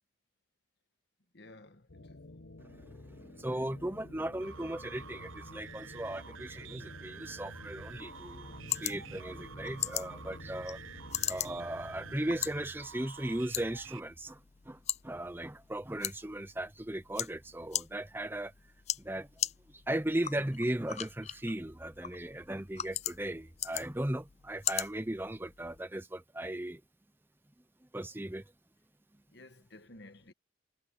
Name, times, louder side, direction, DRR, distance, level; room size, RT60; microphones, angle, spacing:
voice 1, 1.3-2.2 29.3-30.3, left 2 dB, 55° left, 1.5 m, -54 dB
sound 1, 1.9-12.6, left 2 dB, 80° left, 1.3 m, -51 dB
voice 2, 2.6-10.8 11.3-14.4 14.7-14.8 15.0-18.5 19.0-19.3 19.9-26.8 27.9-28.4, right 1 dB, 10° right, 0.7 m, -37 dB
sound 2, 4.4-14.0, right 6 dB, 85° right, 1.1 m, -49 dB
sound 3, 7.8-25.8, left 12 dB, 35° left, 0.4 m, -41 dB
head